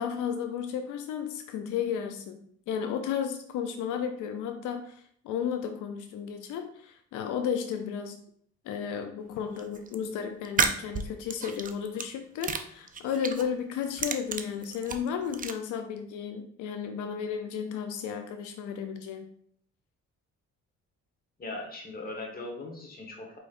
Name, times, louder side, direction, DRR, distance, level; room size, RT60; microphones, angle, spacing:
voice 1, 0.0-2.4 2.7-8.2 8.6-19.3, left 7 dB, 85° left, 6 dB, 0.5 m, -33 dB
sound 1, 9.6-10.0 10.4-12.1 12.4-13.5 13.8-15.5, right 5 dB, 30° right, 0.4 m, -31 dB
voice 2, 21.4-23.4, left 2 dB, 30° left, 1 dB, 1.2 m, -39 dB
4.9 x 3.1 x 2.5 m, 0.62 s
cardioid pair, 90°, 30 cm